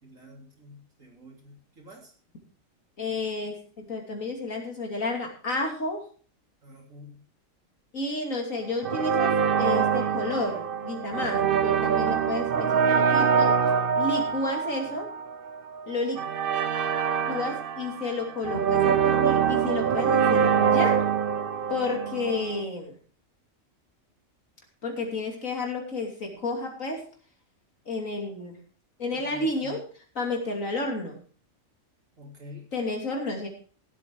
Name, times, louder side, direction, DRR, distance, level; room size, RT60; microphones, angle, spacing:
voice 1, 0.0-2.1 6.6-7.2 29.1-29.8 32.2-32.7, left 2 dB, 75° right, 0 dB, 3.6 m, -47 dB
voice 2, 3.0-6.0 7.9-13.5 14.0-15.1 15.9-16.2 17.2-21.0 21.7-22.9 24.8-27.0 27.9-28.6 29.0-29.8 30.1-31.2 32.7-33.5, left 2 dB, 75° left, 2 dB, 3.3 m, -31 dB
sound 1, 8.8-22.6, right 7 dB, 50° right, 0.9 m, -24 dB
16.0 x 8.2 x 4.6 m, 0.41 s
omnidirectional pair, 1.4 m